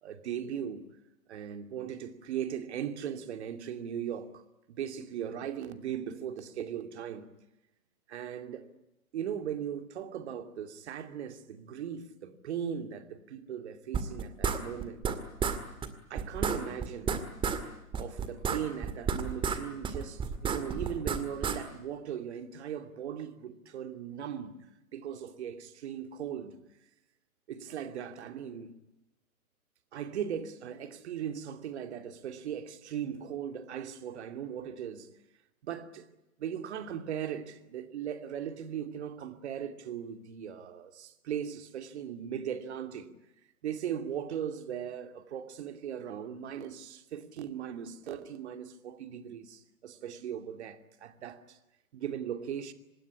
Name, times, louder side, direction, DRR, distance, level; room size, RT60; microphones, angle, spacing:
voice 1, 0.0-0.9 1.3-4.4 4.7-7.3 8.1-8.7 9.1-15.1 16.1-17.2 18.0-24.6 24.9-26.6 27.5-28.7 29.9-35.1 35.6-36.1 36.4-43.1 43.6-51.6 51.9-52.7, right 9 dB, 50° right, 2.7 m, -38 dB
sound 1, 13.9-15.1 15.4-15.6 15.8-15.9 16.2-17.6 17.9-19.6 19.8-21.6, right 6 dB, 10° right, 2.0 m, -31 dB
25.5 x 21.0 x 9.8 m
figure-of-eight pair, 120°, 44 cm